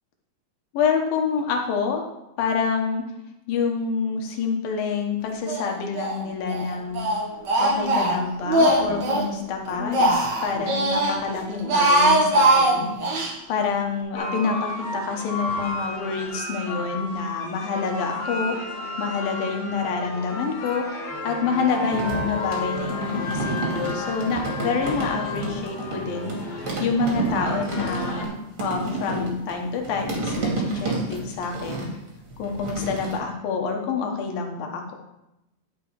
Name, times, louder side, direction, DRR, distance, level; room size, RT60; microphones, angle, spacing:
voice 1, 0.7-2.0 2.4-3.0 3.5-7.1 7.6-12.9 13.5-18.6 19.0-20.9 21.2-26.3 26.8-28.3 28.6-31.9 32.4-34.9, left 5 dB, 80° left, 2 dB, 3.1 m, -27 dB
Speech, 5.5-6.2 6.5-9.3 9.7-11.2 11.5-13.3, right 1 dB, 65° right, 1.1 m, -21 dB
sound 1, 14.1-28.2, left 2 dB, 55° left, 1.1 m, -33 dB
sound 2, 21.9-26.0 26.3-33.2, right 3 dB, 40° right, 2.7 m, -30 dB
11.5 x 6.0 x 4.8 m, 0.91 s
omnidirectional pair, 4.0 m